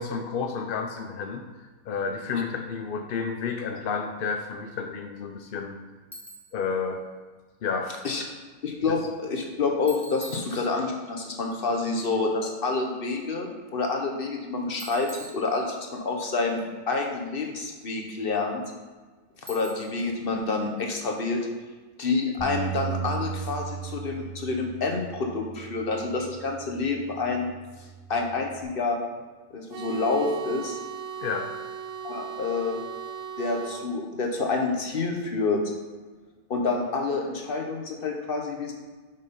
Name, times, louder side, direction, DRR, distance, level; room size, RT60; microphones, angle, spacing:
voice 1, 0.0-1.4 1.9-5.8 6.5-7.0 7.6-7.9 31.2-31.5, left 5 dB, 60° left, 4 dB, 0.6 m, -30 dB
Bicycle, 6.1-6.6 9.9-11.1 14.8-16.0 19.5-20.1, right 1 dB, ahead, 0.7 m, -44 dB
voice 2, 8.6-18.6 19.5-21.4 22.0-27.5 28.1-29.0 29.5-30.8 32.0-32.8 33.4-35.6 36.5-38.7, left 3 dB, 40° left, 2 dB, 1.2 m, -28 dB
Bass guitar, 22.4-28.6, right 7 dB, 15° right, 2.0 m, -37 dB
sound 1, 29.7-33.9, right 7 dB, 65° right, 0.8 m, -37 dB
6.4 x 5.5 x 5.3 m, 1.4 s
omnidirectional pair, 1.6 m